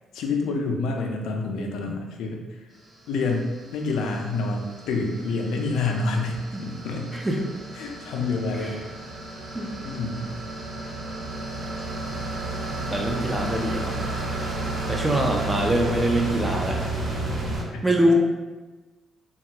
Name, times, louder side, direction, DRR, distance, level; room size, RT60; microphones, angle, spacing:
voice 1, 0.1-2.4 3.1-7.2 7.7-8.8 9.8-10.3 17.7-18.1, left 3 dB, 85° left, 2 dB, 0.4 m, -28 dB
sound 1, 2.9-17.6, right 2 dB, 45° right, 1.1 m, -32 dB
voice 2, 12.9-14.0 14.9-16.9 17.8-18.1, right 1 dB, 15° right, 0 dB, 0.4 m, -24 dB
3.0 x 2.3 x 2.8 m, 1.2 s
cardioid pair, 100°, 0 cm